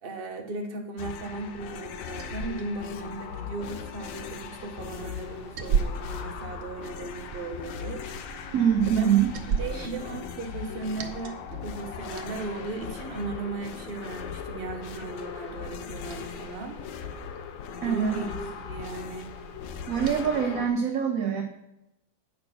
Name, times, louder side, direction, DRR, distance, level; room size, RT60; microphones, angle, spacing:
voice 1, 0.0-8.0 8.9-9.1 9.6-11.4 11.6-16.8 17.8-19.3, right 3 dB, 35° right, 3 dB, 1.1 m, -36 dB
sound 1, 1.0-20.7, left 7 dB, 75° left, 1.5 m, -39 dB
sound 2, 1.6-15.2, equal, 30° left, 3.3 m, -53 dB
Liquid, 1.7-20.3, right 6 dB, 85° right, 1.5 m, -38 dB
voice 2, 8.5-9.3 9.7-9.9 17.8-18.2 19.9-21.4, right 8 dB, 55° right, 4 dB, 1.0 m, -24 dB
8.8 x 5.7 x 6.1 m, 0.87 s
omnidirectional pair, 2.1 m